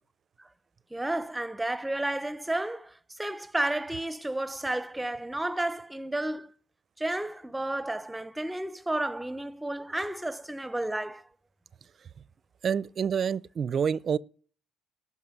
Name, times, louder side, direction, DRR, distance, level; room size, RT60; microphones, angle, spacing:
voice 1, 0.9-6.5 7.0-11.2, right 1 dB, 10° right, 0.7 m, -32 dB
voice 2, 12.6-14.2, right 7 dB, 45° right, 0.5 m, -27 dB
12.0 x 5.8 x 9.2 m
supercardioid pair, 70°, 0 cm